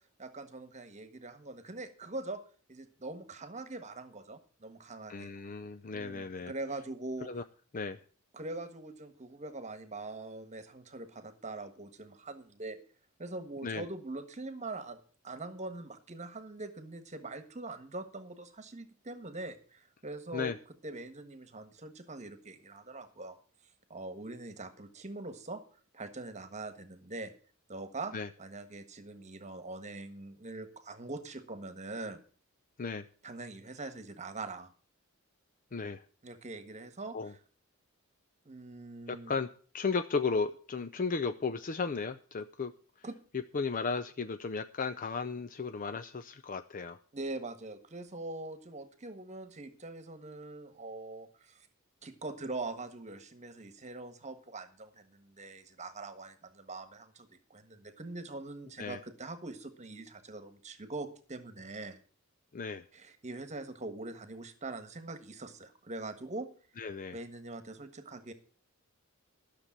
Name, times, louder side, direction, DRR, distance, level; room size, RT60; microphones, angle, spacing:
voice 1, 0.2-2.4 2.7-5.3 5.9-7.3 8.3-12.8 13.2-15.0 15.2-20.5 20.8-23.4 23.9-25.6 25.9-27.3 27.7-32.2 33.2-34.7 36.2-37.1 38.4-39.3 43.0-43.2 47.1-51.7 52.0-62.0 62.9-66.5 67.1-68.3, right 2 dB, 35° right, 10 dB, 1.5 m, -43 dB
voice 2, 5.1-6.5 7.3-7.4 7.7-8.0 13.6-13.8 20.3-20.6 28.1-28.3 32.8-33.0 35.7-36.0 37.1-37.3 39.1-39.5 39.7-42.7 43.3-47.0 58.8-59.0 62.5-62.8 66.8-67.2, left 4 dB, 40° left, 11 dB, 0.5 m, -35 dB
13.0 x 6.8 x 7.3 m, 0.41 s
head